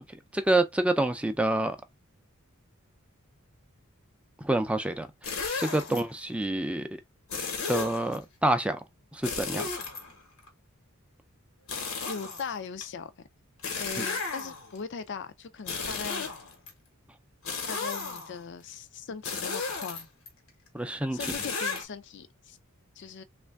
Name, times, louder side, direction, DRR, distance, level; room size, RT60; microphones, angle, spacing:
voice 1, 0.3-1.8 4.4-6.9 7.7-8.8 9.1-9.7 14.0-14.1 20.7-21.2, right 1 dB, 5° right, 0.4 m, -27 dB
sound 1, 5.2-6.0 7.3-8.2 9.2-10.5 11.7-12.8 13.6-14.8 15.6-16.7 17.4-18.4 19.2-20.3 21.2-21.8, left 4 dB, 80° left, 1.2 m, -34 dB
voice 2, 12.1-13.1 13.7-16.3 17.7-20.1 21.1-22.6 23.0-23.2, left 5 dB, 55° left, 0.5 m, -39 dB
3.2 x 2.5 x 3.3 m
head